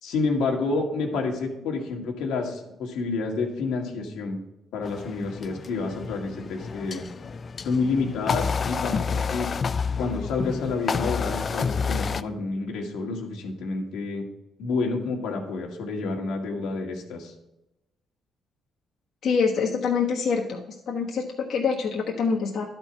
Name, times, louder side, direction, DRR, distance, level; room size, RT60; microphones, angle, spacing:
voice 1, 0.0-4.4 4.7-7.1 7.6-9.5 10.0-14.2 14.6-17.3, left 4 dB, 90° left, 1 dB, 1.7 m, -29 dB
sound 1, 4.8-12.2, left 5 dB, 40° left, 0.4 m, -29 dB
voice 2, 19.2-20.6 20.9-22.6, left 5 dB, 65° left, -2 dB, 1.3 m, -25 dB
11.5 x 4.6 x 5.6 m, 0.91 s
cardioid pair, 90°, 0 cm